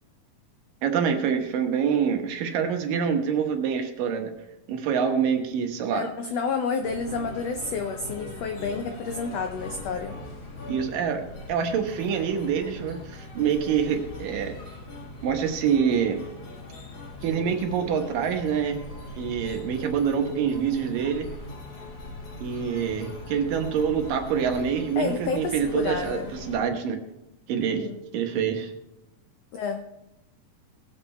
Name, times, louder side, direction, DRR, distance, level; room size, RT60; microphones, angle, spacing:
voice 1, 0.8-4.3 4.7-6.1 10.7-11.2 11.5-14.5 15.2-16.2 17.2-18.8 19.2-21.3 22.4-27.0 27.5-27.9 28.1-28.7, right 7 dB, 80° right, 5 dB, 2.9 m, -26 dB
voice 2, 5.9-10.2 25.0-26.4 27.7-28.0 29.5-29.8, left 5 dB, 85° left, 6 dB, 1.4 m, -30 dB
sound 1, 6.8-26.6, left 2 dB, 45° left, 3.3 m, -40 dB
19.0 x 7.5 x 4.4 m, 0.90 s
omnidirectional pair, 3.9 m